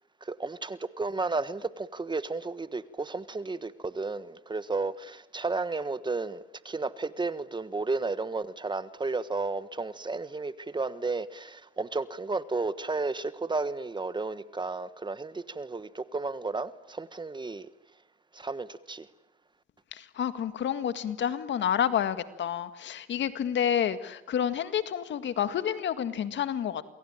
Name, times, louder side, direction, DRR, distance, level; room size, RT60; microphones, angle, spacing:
voice 1, 0.2-17.7 18.3-19.1, right 3 dB, 25° right, 1.3 m, -33 dB
voice 2, 19.9-26.8, left 9 dB, 65° left, 2.0 m, -29 dB
28.5 x 23.0 x 8.9 m
cardioid pair, 90°, 20 cm